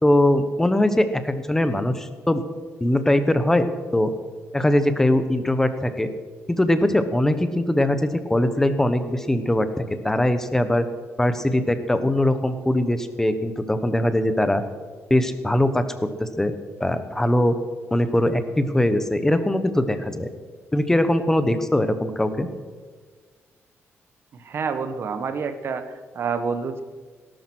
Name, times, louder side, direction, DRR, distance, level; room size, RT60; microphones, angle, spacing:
voice 1, 0.0-2.4 2.8-3.7 3.9-4.1 4.5-6.1 6.5-9.7 10.0-10.8 11.2-14.6 15.1-15.8 16.2-16.5 16.8-17.5 17.9-20.3 20.7-22.5, left 1 dB, 10° left, 10 dB, 1.2 m, -21 dB
voice 2, 24.4-25.9 26.1-26.8, right 5 dB, 50° right, 10 dB, 1.4 m, -27 dB
18.5 x 11.5 x 6.3 m, 1.5 s
cardioid pair, 150°, 5 cm